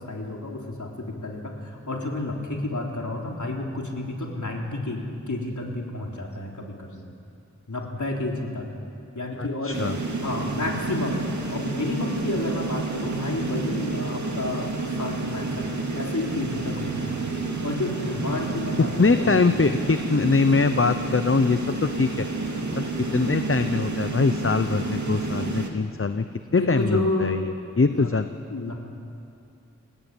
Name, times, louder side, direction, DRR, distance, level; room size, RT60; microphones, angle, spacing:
voice 1, 0.0-7.0 7.7-8.7 9.1-9.8 10.2-11.2 11.5-17.2 17.6-19.3 26.6-27.4 27.9-28.1 28.5-28.9, left 2 dB, 75° left, 0 dB, 3.8 m, -30 dB
voice 2, 9.4-10.0 19.0-22.3 22.8-22.9 23.1-26.2 26.5-28.3, left 4 dB, 45° left, 9 dB, 0.9 m, -23 dB
sound 1, 9.7-25.7, right 3 dB, 70° right, 2.5 m, -30 dB
29.0 x 18.0 x 9.1 m, 2.6 s
wide cardioid pair, 60°, 30 cm